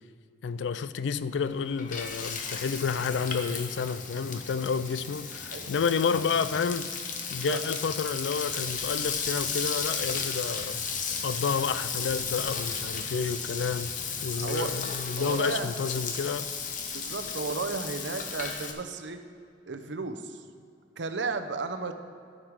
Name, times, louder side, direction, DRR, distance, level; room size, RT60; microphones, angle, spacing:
voice 1, 0.4-6.9 7.3-10.8 11.2-13.9 14.2-16.5, left 6 dB, 90° left, 0.4 m, -30 dB
Frying (food), 1.4-18.7, left 5 dB, 45° left, 0.9 m, -34 dB
sound 1, 5.4-14.3, equal, 5° left, 2.2 m, -52 dB
voice 2, 14.3-14.7 15.2-15.7 16.9-19.2 19.7-20.4 21.0-21.9, right 4 dB, 85° right, 0.7 m, -33 dB
12.0 x 6.5 x 4.8 m
head